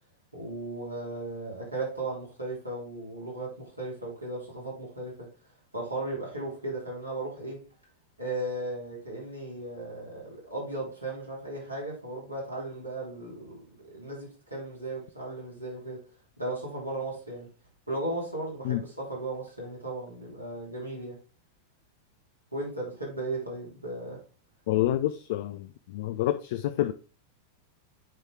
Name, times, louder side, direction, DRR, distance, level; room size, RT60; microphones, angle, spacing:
voice 1, 0.3-5.3 5.7-7.6 8.2-13.6 13.9-16.0 16.4-17.5 17.9-21.2 22.5-24.2, right 2 dB, 85° right, 3.2 m, -36 dB
voice 2, 24.7-26.9, left 14 dB, 50° left, 0.4 m, -28 dB
8.8 x 4.4 x 3.4 m
figure-of-eight pair, 90°, 0 cm